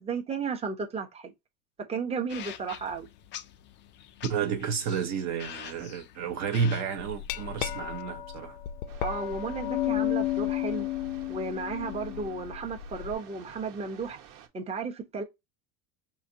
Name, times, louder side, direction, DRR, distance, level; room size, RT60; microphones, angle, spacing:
voice 1, 0.0-1.3 1.9-3.1 9.0-10.9 11.3-14.2 14.5-15.2, right 4 dB, 15° right, 0.8 m, -34 dB
sound 1, 2.3-8.0, left 10 dB, 30° left, 0.4 m, -46 dB
voice 2, 4.3-8.6, right 6 dB, 40° right, 0.8 m, -31 dB
Glass, 7.0-13.1, left 13 dB, 85° left, 0.6 m, -32 dB
sound 2, 8.9-14.5, right 9 dB, 60° right, 1.2 m, -52 dB
4.9 x 2.8 x 2.7 m
supercardioid pair, 120°, 42 cm